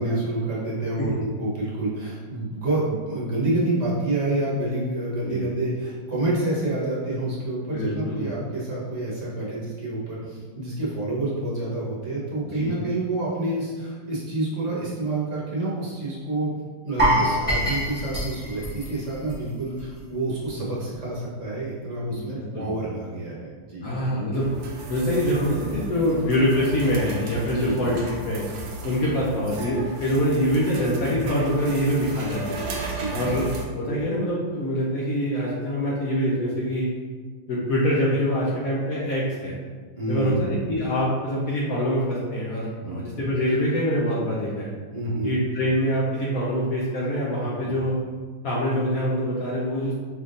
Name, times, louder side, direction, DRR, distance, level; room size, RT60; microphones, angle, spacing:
voice 1, 0.0-16.5 16.8-23.9 27.4-27.9 28.9-29.2 32.7-33.4 39.9-40.4 42.8-43.0 44.9-45.4 47.6-47.7, right 2 dB, 40° right, -7 dB, 1.3 m, -28 dB
voice 2, 7.7-8.3 12.4-12.8 16.9-17.2 22.1-22.7 23.8-24.5 24.9-28.4 28.8-32.6 33.1-36.9 37.5-39.6 40.1-44.7 45.2-48.0 48.4-49.9, equal, 70° left, -5 dB, 0.8 m, -25 dB
sound 1, 17.0-20.0 20.3-20.5 20.9-21.0, equal, 5° right, 0.9 m, -25 dB
sound 2, 24.3-33.7, right 2 dB, 75° right, 0.8 m, -35 dB
5.1 x 3.6 x 2.6 m, 1.5 s
omnidirectional pair, 2.3 m